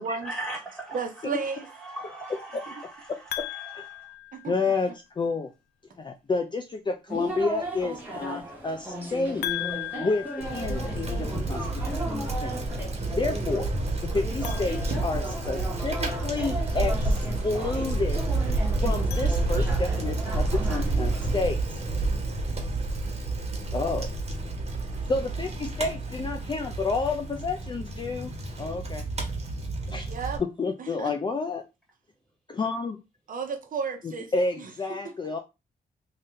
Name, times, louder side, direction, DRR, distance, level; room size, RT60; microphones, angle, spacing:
voice 1, 0.2-1.0 1.8-4.1, right 1 dB, 5° left, 1.9 m, -39 dB
voice 2, 0.9-1.7 4.3-4.5 30.1-30.4 30.8-31.2 33.3-34.7 35.0-35.1, right 5 dB, 55° right, 0.7 m, -33 dB
voice 3, 3.1-3.5 3.7-3.9 4.5-5.5 6.0-9.4 9.9-11.7 12.1-12.5 13.2-13.7 14.0-18.2 18.8-21.6 23.7-24.1 25.1-28.3 28.6-29.0 29.9-30.1 30.4-31.6 32.5-33.0 34.0-35.4, left 3 dB, 30° left, 0.4 m, -30 dB
sound 1, 3.3-5.0 9.4-11.5 14.3-15.9 18.9-20.1, left 14 dB, 80° left, 0.5 m, -38 dB
sound 2, 7.1-21.4, right 1 dB, 10° right, 1.3 m, -37 dB
Bicycle, 10.4-30.4, right 2 dB, 40° right, 1.3 m, -29 dB
3.2 x 2.7 x 3.8 m
cardioid pair, 100°, 17 cm